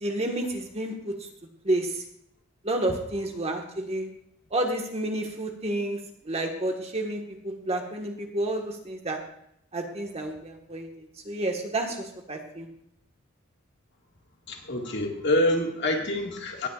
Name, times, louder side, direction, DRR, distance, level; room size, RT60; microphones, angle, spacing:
voice 1, 0.0-1.1 1.6-2.0 2.6-4.1 4.5-6.0 6.2-9.2 9.7-12.7, right 1 dB, 30° right, 2 dB, 1.6 m, -30 dB
voice 2, 14.5-16.7, left 1 dB, 60° left, 1 dB, 2.0 m, -26 dB
19.0 x 9.2 x 2.5 m, 0.73 s
head